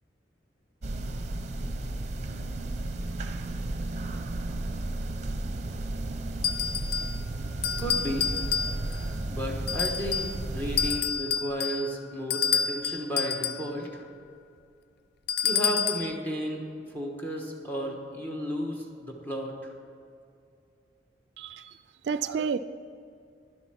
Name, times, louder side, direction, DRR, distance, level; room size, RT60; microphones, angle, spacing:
sound 1, 0.8-11.0, right 2 dB, 40° right, 0.7 m, -33 dB
sound 2, 6.4-7.2 7.6-9.1 9.7-10.4 10.8-13.7 15.3-16.1, left 7 dB, 65° left, 0.4 m, -29 dB
voice 1, 7.8-8.3 9.3-14.0 15.4-16.7 16.9-19.7, equal, 10° left, 0 dB, 1.2 m, -33 dB
voice 2, 21.4-22.6, right 6 dB, 70° right, 13 dB, 0.3 m, -31 dB
11.0 x 8.2 x 5.7 m, 2.4 s
head